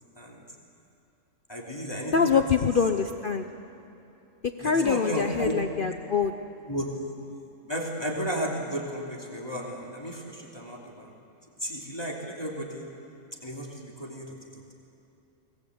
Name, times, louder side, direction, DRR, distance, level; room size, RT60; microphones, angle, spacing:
voice 1, 1.5-2.4 4.6-5.5 6.7-6.9 7.6-11.1 11.6-12.8 13.4-14.3, equal, 15° left, -2 dB, 2.8 m, -33 dB
voice 2, 2.1-3.5 4.4-6.3, left 5 dB, 45° left, 7 dB, 0.8 m, -24 dB
24.0 x 20.0 x 8.1 m, 2.8 s
omnidirectional pair, 1.5 m